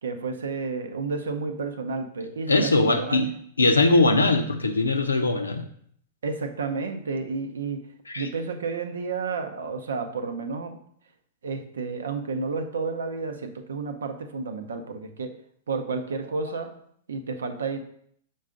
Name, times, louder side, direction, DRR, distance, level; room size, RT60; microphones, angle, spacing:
voice 1, 0.0-3.2 6.2-7.9 8.2-10.8 11.4-15.4 15.7-16.7 17.1-17.8, right 4 dB, 75° right, 8 dB, 0.7 m, -31 dB
voice 2, 2.5-3.3 3.6-5.6 8.1-8.3, left 2 dB, 85° left, 6 dB, 0.6 m, -21 dB
6.4 x 3.9 x 3.7 m, 0.66 s
figure-of-eight pair, 105°, 0 cm